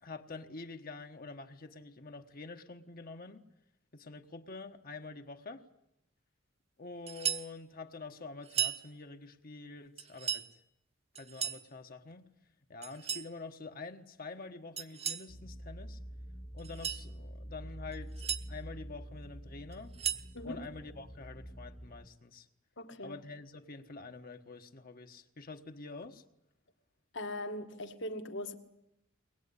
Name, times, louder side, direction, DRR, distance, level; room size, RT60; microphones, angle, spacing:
voice 1, 0.0-3.4 3.9-5.7 6.8-10.6 11.2-12.3 12.7-16.0 16.5-20.0 20.4-22.5 23.0-26.2, left 3 dB, 45° left, 1.3 m, -47 dB
sound 1, 7.1-7.5 8.4-8.8 10.0-10.5 11.1-11.6 12.8-13.3 14.8-15.3 16.6-17.0 17.9-18.4 19.7-20.3, right 8 dB, 30° right, 1.2 m, -35 dB
sound 2, 15.3-22.1, equal, 10° left, 1.2 m, -47 dB
voice 2, 20.3-20.7 22.8-23.2 27.1-28.5, left 1 dB, 60° left, 1.8 m, -40 dB
23.0 x 20.5 x 9.8 m
head